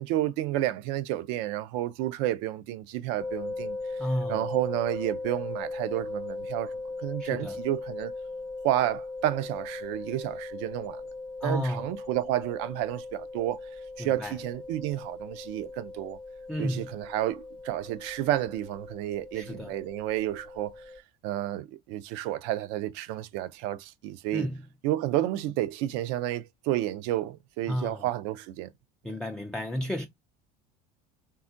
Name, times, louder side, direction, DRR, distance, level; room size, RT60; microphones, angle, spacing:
voice 1, 0.0-3.8 4.3-8.1 8.6-11.1 11.4-13.6 14.0-16.2 16.6-20.7 21.2-24.5 24.8-28.7, right 14 dB, 70° right, 0.4 m, -31 dB
sound 1, 3.2-21.0, left 3 dB, 25° left, 0.7 m, -39 dB
voice 2, 4.0-4.5 7.2-7.6 11.4-11.8 14.0-14.4 16.5-16.9 19.3-19.7 24.3-24.6 27.7-28.1 29.0-30.1, equal, 5° left, 0.3 m, -32 dB
3.5 x 2.2 x 2.5 m
supercardioid pair, 85°, 19 cm